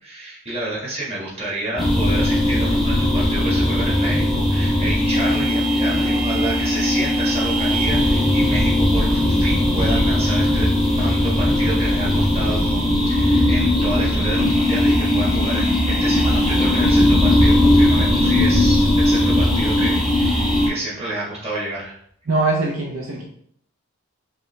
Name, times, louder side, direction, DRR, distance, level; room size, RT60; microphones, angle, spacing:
voice 1, 0.0-10.7 11.0-22.0, right 1 dB, 25° right, -6 dB, 1.5 m, -29 dB
sound 1, 1.8-20.7, left 1 dB, ahead, 0.8 m, -18 dB
voice 2, 22.3-23.2, right 3 dB, 65° right, -1 dB, 0.7 m, -22 dB
4.9 x 3.3 x 3.1 m, 0.66 s
head